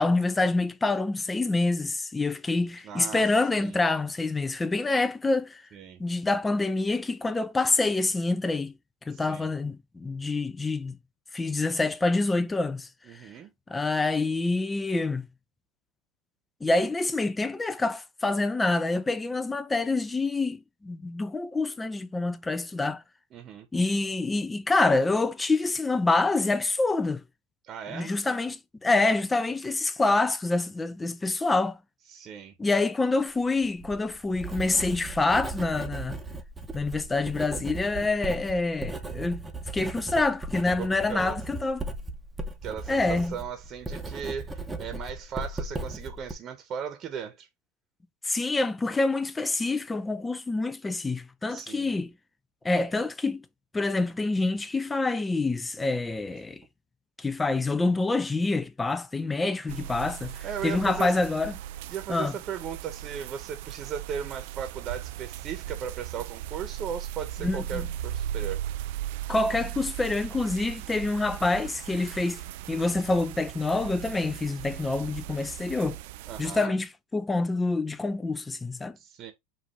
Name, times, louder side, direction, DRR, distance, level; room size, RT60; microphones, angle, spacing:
voice 1, 0.0-5.6 6.0-8.7 9.1-11.0 11.3-12.9 13.7-15.3 16.6-23.0 23.7-27.2 27.9-31.8 32.6-36.2 36.7-39.5 39.7-41.9 42.9-43.4 48.2-52.1 52.6-53.4 53.7-56.6 57.2-61.5 62.1-62.3 67.4-67.9 69.3-72.4 72.7-76.0 76.4-79.0, left 3 dB, 10° left, 0.5 m, -26 dB
voice 2, 2.8-3.3 3.6-3.8 5.7-6.0 9.1-9.5 13.1-13.5 23.3-23.7 27.7-28.1 32.1-32.5 40.8-41.4 42.6-47.5 51.5-51.9 60.4-61.2 61.9-68.6 76.3-76.8 79.0-79.3, right 8 dB, 40° right, 1.0 m, -37 dB
Writing, 33.6-46.3, right 2 dB, 10° right, 0.9 m, -37 dB
sound 1, 59.7-76.7, right 12 dB, 70° right, 0.3 m, -38 dB
5.3 x 2.6 x 3.4 m
supercardioid pair, 115°, 0 cm